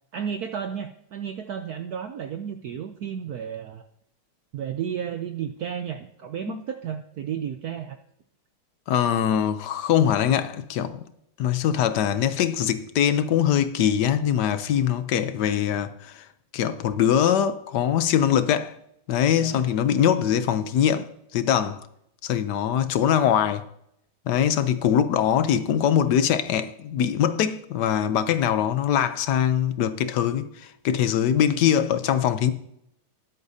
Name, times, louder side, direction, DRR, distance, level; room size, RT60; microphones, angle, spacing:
voice 1, 0.1-3.8 4.5-8.0 19.4-19.8, right 8 dB, 80° right, 0.8 m, -33 dB
voice 2, 8.9-11.1 11.4-16.3 16.5-18.8 19.1-21.9 22.2-23.6 24.3-32.5, left 9 dB, 70° left, 1.1 m, -22 dB
20.5 x 8.2 x 2.7 m
omnidirectional pair, 2.4 m